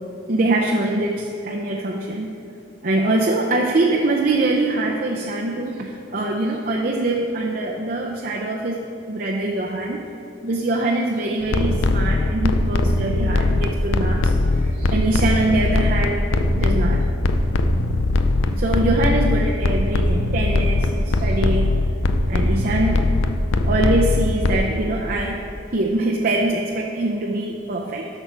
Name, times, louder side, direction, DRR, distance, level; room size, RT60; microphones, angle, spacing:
voice 1, 0.3-2.3 2.8-10.0 10.4-16.3 16.5-17.1 18.5-21.9 22.3-23.1 23.7-25.4 25.7-28.1, right 2 dB, 45° right, -1 dB, 0.6 m, -23 dB
sound 1, 11.4-24.6, left 2 dB, 90° left, 0.5 m, -20 dB
8.1 x 6.2 x 6.7 m, 2.8 s
head